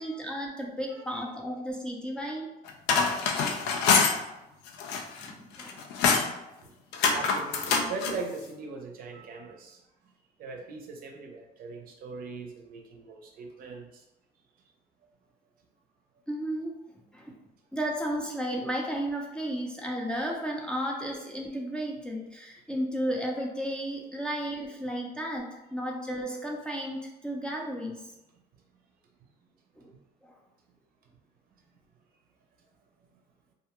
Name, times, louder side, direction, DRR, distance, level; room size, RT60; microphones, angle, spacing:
voice 1, 0.0-2.5 5.2-6.2 16.3-16.8 17.1-17.3 17.7-28.0 29.8-29.9 30.2-30.3, equal, 5° left, -2 dB, 0.4 m, -33 dB
voice 2, 0.9-1.3 6.6-6.7 7.1-9.8 10.4-14.0, right 4 dB, 60° right, 2 dB, 0.5 m, -40 dB
sound 1, 2.7-4.2 4.7-5.3 5.6-6.3 6.9-8.2, left 5 dB, 85° left, 0.4 m, -25 dB
2.4 x 2.2 x 2.8 m, 0.94 s
cardioid pair, 110°, 17 cm